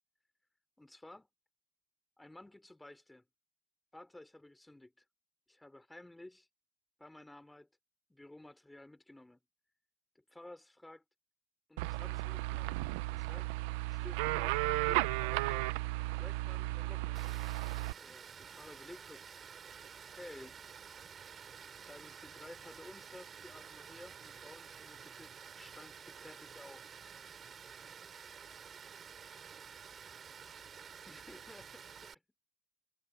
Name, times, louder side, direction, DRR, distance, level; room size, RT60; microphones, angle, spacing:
voice 1, 0.8-1.3 2.2-3.3 3.9-5.0 5.5-6.5 7.0-7.7 8.1-9.4 10.2-11.0 11.7-12.7 13.1-13.5 13.9-15.7 16.2-17.2 18.0-19.4 20.0-20.6 21.8-26.8 31.1-32.2, left 1 dB, 5° left, 3.9 m, -54 dB
sound 1, 11.8-17.9, right 20 dB, 80° right, 0.7 m, -34 dB
Water, 17.1-32.1, right 7 dB, 30° right, 3.5 m, -51 dB
cardioid pair, 140°, 0 cm